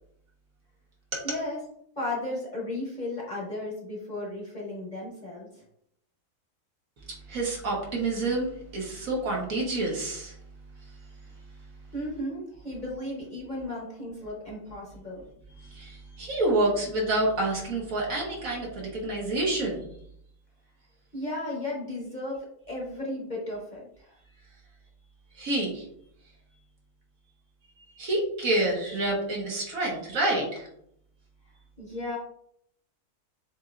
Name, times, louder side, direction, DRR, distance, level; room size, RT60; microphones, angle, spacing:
voice 1, 1.2-1.6 2.0-5.6 11.9-15.3 21.1-24.2 31.8-32.2, left 1 dB, 30° left, -5 dB, 1.1 m, -35 dB
voice 2, 7.3-10.4 15.6-19.9 25.3-25.8 28.0-30.7, right 2 dB, 65° right, -2 dB, 1.6 m, -28 dB
6.9 x 2.7 x 2.5 m, 0.72 s
omnidirectional pair, 1.6 m